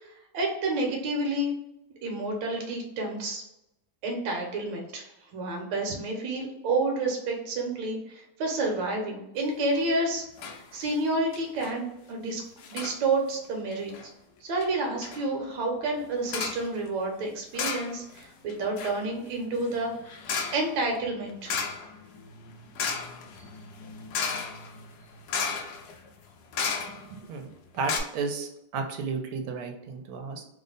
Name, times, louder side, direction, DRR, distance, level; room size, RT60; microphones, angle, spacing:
voice 1, 0.0-1.5 2.0-3.4 4.0-12.4 12.7-14.1 14.4-21.6, right 2 dB, 65° right, 1 dB, 1.4 m, -30 dB
sound 1, 9.7-10.1 10.4-10.6 10.9-11.0 11.3-11.8 12.6-13.0 13.7-14.1 14.6-14.7 15.0-15.2 16.3-16.7 17.5-18.2 18.5-27.3 27.6-27.7 27.8-28.0, left 5 dB, 85° left, 0.8 m, -34 dB
voice 2, 27.1-30.4, right 4 dB, 85° right, 4 dB, 1.5 m, -33 dB
3.5 x 2.1 x 3.8 m, 0.85 s
omnidirectional pair, 2.3 m